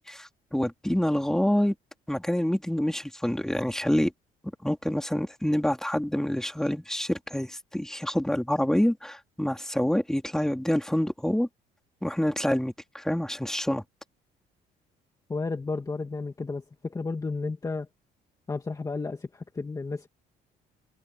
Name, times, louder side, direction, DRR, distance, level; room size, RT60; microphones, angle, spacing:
voice 1, 0.0-1.7 2.1-4.1 4.6-11.5 12.0-13.8, left 1 dB, 5° left, 3.5 m, -27 dB
voice 2, 15.3-17.9 18.5-20.1, left 3 dB, 20° left, 1.9 m, -32 dB
cardioid pair, 110°, 17 cm